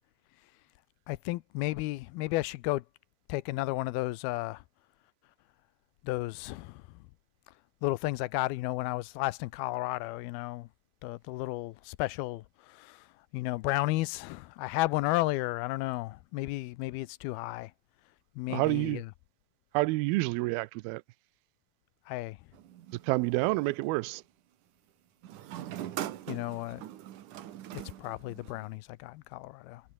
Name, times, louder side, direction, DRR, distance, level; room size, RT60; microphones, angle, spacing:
voice 1, 1.1-2.8 3.3-4.6 6.0-6.8 7.8-10.7 11.0-12.4 12.8-13.0 13.3-17.7 18.4-19.0 22.1-22.4 26.3-26.8 28.0-29.8, left 19 dB, 90° left, 2.6 m, -33 dB
voice 2, 18.5-19.0 19.7-21.0 23.0-24.2, right 22 dB, 85° right, 2.5 m, -28 dB
sound 1, 22.5-23.8 25.2-28.8, right 12 dB, 65° right, 2.6 m, -42 dB
omnidirectional pair, 4.3 m